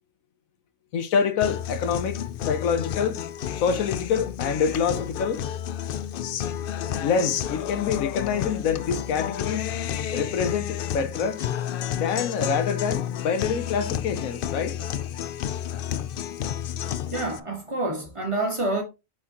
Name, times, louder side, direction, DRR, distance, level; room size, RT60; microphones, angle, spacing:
voice 1, 0.9-3.2 3.6-5.5 7.0-9.7 10.1-11.4 11.9-14.8, left 6 dB, 85° left, 1.2 m, -26 dB
Guitar, 1.4-17.4, left 10 dB, 65° left, 0.5 m, -31 dB
voice 2, 17.1-18.8, right 2 dB, 25° right, 1.4 m, -27 dB
7.3 x 4.9 x 2.9 m
omnidirectional pair, 1.4 m